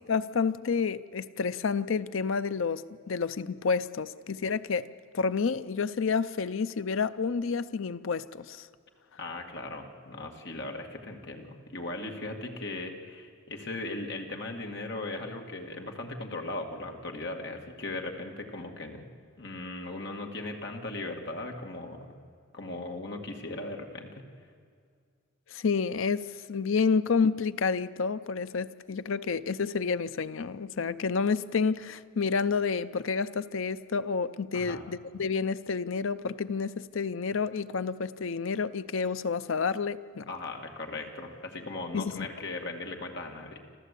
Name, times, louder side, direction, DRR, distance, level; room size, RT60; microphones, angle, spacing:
voice 1, 0.1-4.9 5.1-8.7 25.5-40.3 41.9-42.3, left 5 dB, 70° left, 0.5 m, -29 dB
voice 2, 9.2-19.1 19.4-22.2 22.5-24.3 34.5-34.9 40.3-43.6, left 2 dB, 55° left, 2.1 m, -38 dB
27.0 x 14.0 x 8.4 m
head